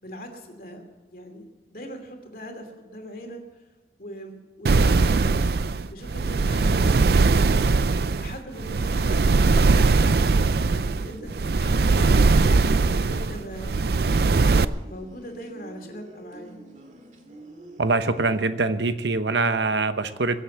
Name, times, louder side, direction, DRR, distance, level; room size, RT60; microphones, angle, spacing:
voice 1, 0.0-3.6 4.0-5.5 5.9-7.7 8.2-10.4 10.7-12.3 12.9-14.3 14.8-16.6, equal, 55° left, 4 dB, 2.7 m, -41 dB
sound 1, 4.7-14.7, right 3 dB, 60° right, 0.5 m, -20 dB
sound 2, 9.1-18.4, right 1 dB, 45° right, 2.4 m, -46 dB
voice 2, 17.8-20.4, right 3 dB, 85° right, 10 dB, 1.0 m, -23 dB
22.5 x 8.1 x 7.3 m, 1.2 s
head